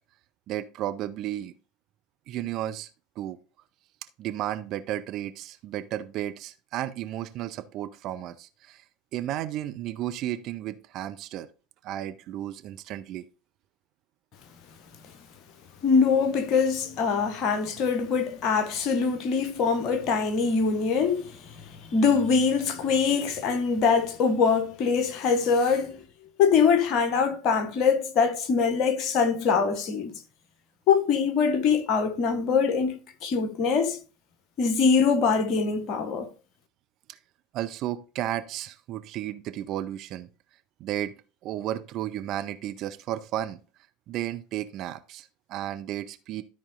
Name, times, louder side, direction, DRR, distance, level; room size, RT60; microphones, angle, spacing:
voice 1, 0.5-1.5 2.3-2.9 3.2-3.4 4.2-8.8 9.1-11.5 11.8-13.3 37.5-40.3 40.8-41.1 41.4-43.6 44.1-46.4, right 12 dB, 45° right, 0.7 m, -33 dB
voice 2, 15.8-21.4 21.9-26.0 26.4-30.1 30.9-34.0 34.6-36.3, left 5 dB, 40° left, 1.3 m, -23 dB
13.0 x 4.3 x 3.8 m
figure-of-eight pair, 75°, 0 cm